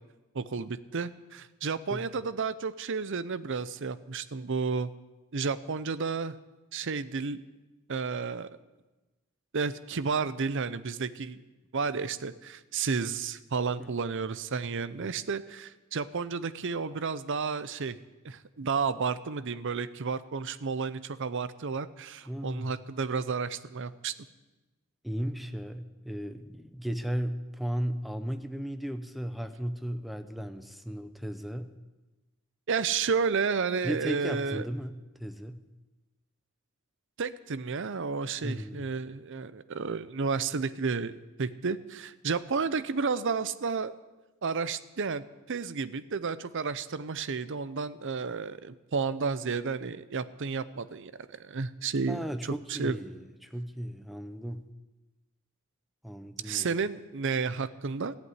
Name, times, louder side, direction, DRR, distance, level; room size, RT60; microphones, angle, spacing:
voice 1, 0.3-4.9 5.3-6.3 6.7-7.4 7.9-8.5 9.5-11.4 11.7-18.0 18.2-24.1 32.7-34.6 37.2-43.9 44.4-53.0 56.4-58.2, right 5 dB, 60° right, 15 dB, 0.7 m, -32 dB
voice 2, 22.3-22.7 25.0-31.7 33.8-35.6 38.4-38.9 52.1-54.6 56.0-56.8, equal, ahead, 9 dB, 0.8 m, -35 dB
15.0 x 8.4 x 9.4 m, 1.1 s
head